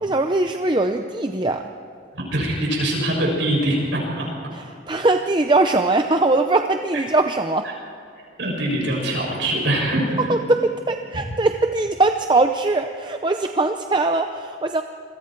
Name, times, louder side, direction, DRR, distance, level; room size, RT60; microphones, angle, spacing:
voice 1, 0.0-1.7 4.5-7.7 10.2-14.8, right 2 dB, 25° right, 6 dB, 0.6 m, -21 dB
voice 2, 2.1-4.3 6.9-7.0 7.6-7.7 8.4-10.2, right 1 dB, 70° right, -2 dB, 7.3 m, -23 dB
28.0 x 22.0 x 4.6 m, 2.6 s
head